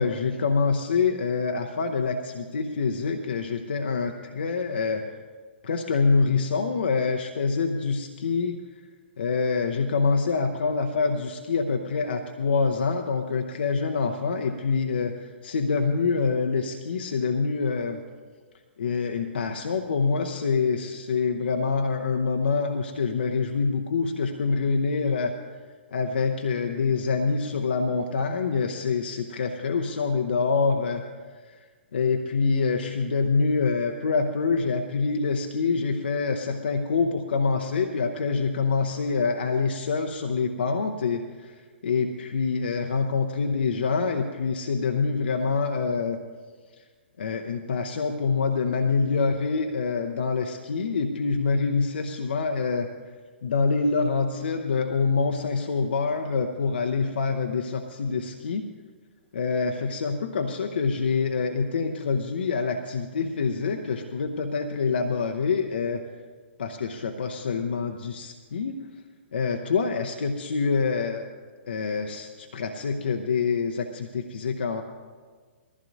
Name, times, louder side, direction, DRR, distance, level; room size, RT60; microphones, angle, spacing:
voice 1, 0.0-5.0 5.6-8.6 9.2-18.0 18.8-25.4 25.9-31.0 31.5-31.6 31.9-41.6 41.8-46.2 47.2-52.9 53.4-58.7 59.3-66.0 66.6-68.8 69.3-71.2 71.7-74.8, left 4 dB, 60° left, 5 dB, 0.7 m, -26 dB
20.5 x 14.5 x 2.6 m, 1.5 s
figure-of-eight pair, 120°, 6 cm